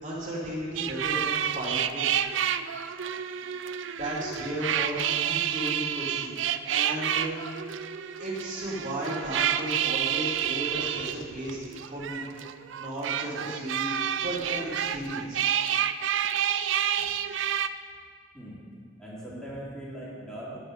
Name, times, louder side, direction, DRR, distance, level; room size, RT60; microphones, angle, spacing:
voice 1, 0.0-2.0 4.0-7.3 8.2-12.3 12.8-15.4, right 1 dB, 40° right, -6 dB, 2.5 m, -34 dB
sound 1, 0.8-17.7, right 9 dB, 70° right, 0.4 m, -29 dB
voice 2, 19.0-20.6, right 1 dB, 5° left, -8 dB, 2.8 m, -40 dB
10.5 x 8.9 x 6.5 m, 2.1 s
head